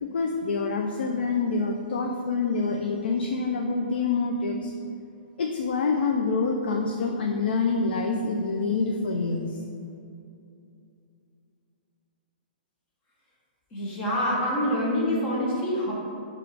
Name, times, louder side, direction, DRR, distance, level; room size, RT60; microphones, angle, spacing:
voice 1, 0.0-4.7 5.4-9.6, left 4 dB, 85° left, 2 dB, 0.3 m, -26 dB
voice 2, 13.7-15.9, equal, 25° left, -5 dB, 0.7 m, -26 dB
4.8 x 2.3 x 3.3 m, 2.6 s
hypercardioid pair, 155°, 5 cm